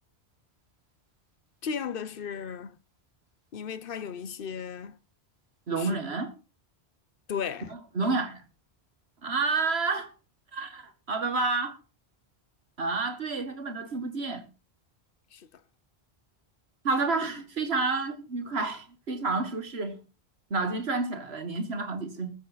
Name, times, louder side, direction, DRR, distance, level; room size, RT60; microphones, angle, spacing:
voice 1, 1.6-2.8 3.5-5.0 5.8-6.0 7.3-7.7 15.3-15.5, left 7 dB, 60° left, 0.9 m, -35 dB
voice 2, 5.7-6.3 7.7-8.4 9.2-10.1 10.5-11.8 12.8-14.4 16.8-20.0 20.5-22.3, right 3 dB, 70° right, 1.9 m, -29 dB
21.0 x 7.0 x 4.0 m
omnidirectional pair, 1.1 m